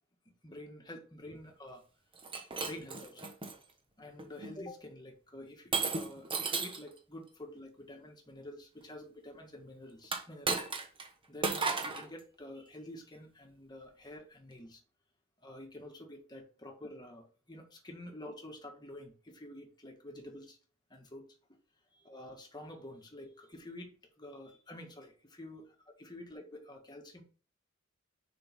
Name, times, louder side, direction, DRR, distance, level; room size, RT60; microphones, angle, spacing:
voice 1, 0.4-1.8 2.6-3.3 4.0-10.7 11.3-14.8 15.4-20.6 20.9-21.4 21.9-27.2, left 1 dB, 20° left, 2 dB, 1.7 m, -48 dB
Shatter, 2.2-3.6 4.2-4.5 5.7-6.9 10.0-11.1 11.4-12.1, right 4 dB, 25° right, 1.2 m, -34 dB
6.8 x 5.5 x 3.7 m, 0.39 s
head